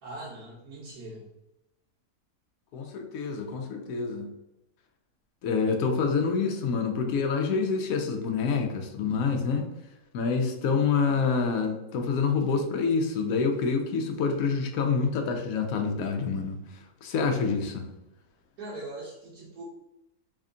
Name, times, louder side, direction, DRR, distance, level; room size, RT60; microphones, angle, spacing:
voice 1, 0.0-1.2 18.6-19.6, right 2 dB, 80° right, -8 dB, 1.5 m, -41 dB
voice 2, 2.7-4.3 5.4-9.7 10.1-16.6 17.0-17.9, left 5 dB, 75° left, 3 dB, 1.0 m, -27 dB
3.5 x 2.3 x 3.7 m, 0.90 s
omnidirectional pair, 1.6 m